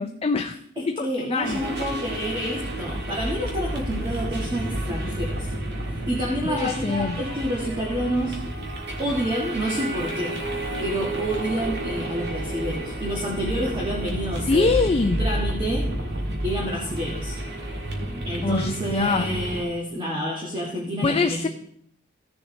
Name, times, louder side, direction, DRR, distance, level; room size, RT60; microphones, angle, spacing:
voice 1, 0.0-1.6 6.5-7.2 14.5-15.2 18.4-19.3 21.0-21.5, left 4 dB, 30° left, 6 dB, 0.4 m, -24 dB
voice 2, 0.8-5.5 6.1-8.4 9.0-10.4 10.8-14.8 15.2-15.9 16.4-17.3 18.2-21.5, equal, 25° right, -3 dB, 1.6 m, -28 dB
sound 1, 1.4-19.6, right 1 dB, 55° right, 1.8 m, -30 dB
16.0 x 6.9 x 3.2 m, 0.70 s
head